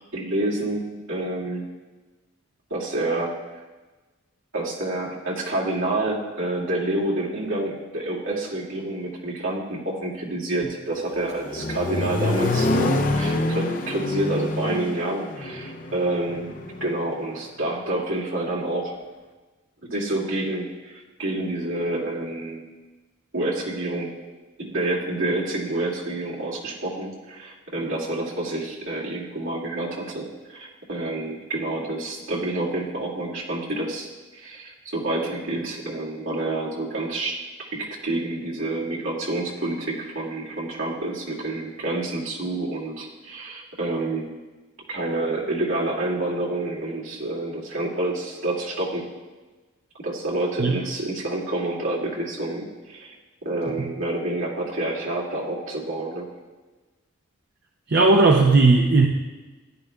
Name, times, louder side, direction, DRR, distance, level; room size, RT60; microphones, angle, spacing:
voice 1, 0.1-1.7 2.7-3.3 4.5-16.5 16.8-18.9 19.8-22.6 23.3-24.1 24.6-34.1 34.3-37.4 37.7-44.3 44.9-49.1 50.0-53.1 53.4-56.3, right 2 dB, 75° right, -4 dB, 2.3 m, -28 dB
Accelerating revving vroom, 10.9-17.0, left 2 dB, 40° left, 0.7 m, -26 dB
voice 2, 57.9-59.1, right 3 dB, 55° right, 2 dB, 0.6 m, -16 dB
14.5 x 11.0 x 2.3 m, 1.2 s
head